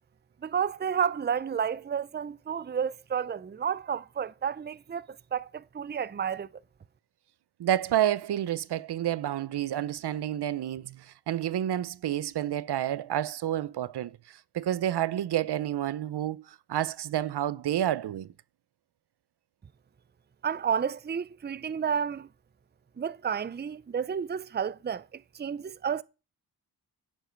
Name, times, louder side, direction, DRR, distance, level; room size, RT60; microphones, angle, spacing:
voice 1, 0.4-6.5 20.4-22.3 23.0-26.0, right 7 dB, 25° right, 0.5 m, -31 dB
voice 2, 7.6-18.3, right 11 dB, 75° right, 0.7 m, -29 dB
16.0 x 7.3 x 4.5 m
cardioid pair, 70°, 40 cm